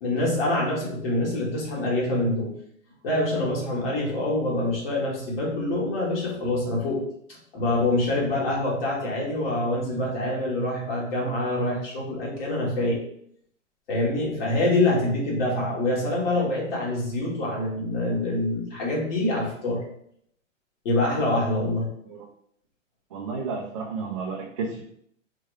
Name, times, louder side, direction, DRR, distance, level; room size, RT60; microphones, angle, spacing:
voice 1, 0.0-2.5 3.0-13.0 13.9-19.8 20.9-21.9, left 1 dB, 45° left, -4 dB, 1.7 m, -25 dB
voice 2, 23.1-24.8, right 4 dB, 30° right, -3 dB, 0.3 m, -32 dB
4.5 x 2.2 x 4.7 m, 0.68 s
hypercardioid pair, 155°, 38 cm